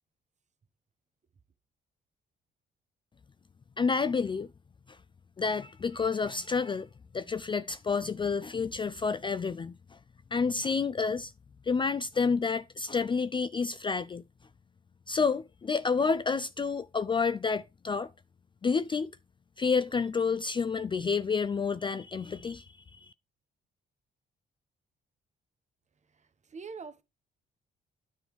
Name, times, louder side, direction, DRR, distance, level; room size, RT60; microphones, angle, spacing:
voice 1, 3.8-4.5 5.4-6.9 7.1-9.8 10.3-11.3 11.7-14.2 15.1-18.1 18.6-19.1 19.6-22.7 22.9-23.1, left 5 dB, 25° left, 0.3 m, -29 dB
voice 2, 26.1-27.0, right 5 dB, 35° right, 1.0 m, -44 dB
9.8 x 3.6 x 4.7 m
cardioid pair, 90°, 20 cm